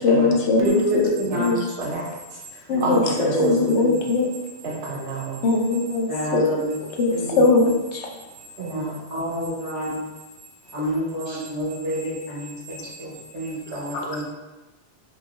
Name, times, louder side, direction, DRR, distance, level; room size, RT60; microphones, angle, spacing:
voice 1, 0.0-1.1 1.4-1.6 2.7-3.0 3.4-4.3 5.4-6.5 7.0-8.1 13.9-14.2, left 3 dB, 85° left, 0 dB, 0.9 m, -20 dB
voice 2, 0.6-1.6 2.7-3.9 6.1-6.7 7.1-7.4 8.7-8.8 9.1-10.1 10.7-14.2, equal, 85° right, -5 dB, 1.4 m, -27 dB
voice 3, 1.8-3.6 4.6-5.4 8.6-9.1 11.3-11.4, right 2 dB, 70° right, -4 dB, 0.9 m, -31 dB
4.8 x 2.2 x 3.0 m, 1.1 s
omnidirectional pair, 1.1 m